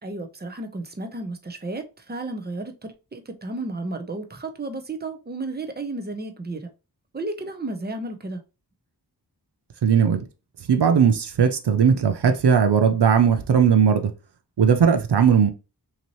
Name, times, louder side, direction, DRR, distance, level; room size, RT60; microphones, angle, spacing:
voice 1, 0.0-6.6 7.1-8.4, right 2 dB, 25° right, 0.8 m, -33 dB
voice 2, 9.8-10.2 10.7-14.1 14.6-15.5, right 7 dB, 75° right, 0.7 m, -18 dB
5.8 x 2.9 x 3.0 m
wide cardioid pair, 90°, 40 cm